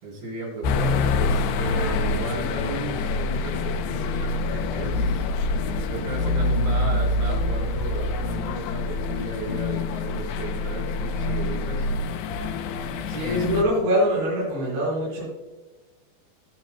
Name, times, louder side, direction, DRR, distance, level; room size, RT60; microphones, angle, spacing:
voice 1, 0.0-5.3 5.9-12.0, right 2 dB, 55° right, -2 dB, 5.4 m, -35 dB
sound 1, 0.6-13.6, left 3 dB, 85° left, 2.8 m, -26 dB
voice 2, 12.7-15.3, equal, 85° right, -6 dB, 6.3 m, -24 dB
21.5 x 7.2 x 2.2 m, 1.1 s
omnidirectional pair, 4.9 m